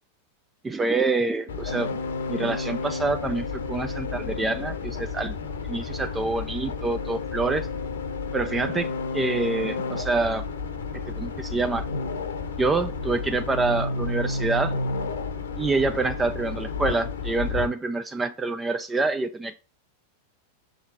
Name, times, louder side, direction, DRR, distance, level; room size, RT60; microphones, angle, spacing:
voice 1, 0.6-2.0 2.3-5.3 5.7-7.7 8.3-10.4 11.2-11.9 12.6-14.7 15.6-19.6, right 3 dB, 15° right, 0.4 m, -26 dB
sound 1, 1.5-17.7, left 4 dB, 65° left, 0.9 m, -31 dB
5.9 x 4.0 x 4.0 m
figure-of-eight pair, 90°, 0 cm